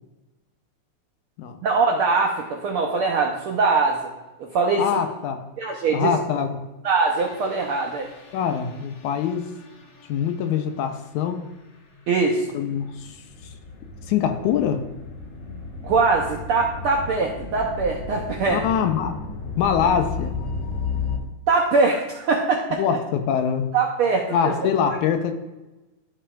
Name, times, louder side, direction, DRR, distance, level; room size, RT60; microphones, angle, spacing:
voice 1, 1.6-4.1 4.4-4.8 5.6-6.1 6.8-8.1 12.1-12.4 15.8-18.6 21.5-22.8 23.7-25.0, right 4 dB, 80° right, 0 dB, 1.2 m, -22 dB
voice 2, 4.8-5.4 5.9-6.6 8.3-9.5 10.1-11.5 12.5-13.2 14.1-14.8 18.5-19.2 19.6-20.4 22.8-23.7 24.3-25.3, left 8 dB, 85° left, 6 dB, 2.2 m, -24 dB
sound 1, 7.2-21.2, left 4 dB, 60° left, 2.4 m, -35 dB
13.5 x 5.7 x 2.4 m, 1.1 s
omnidirectional pair, 3.4 m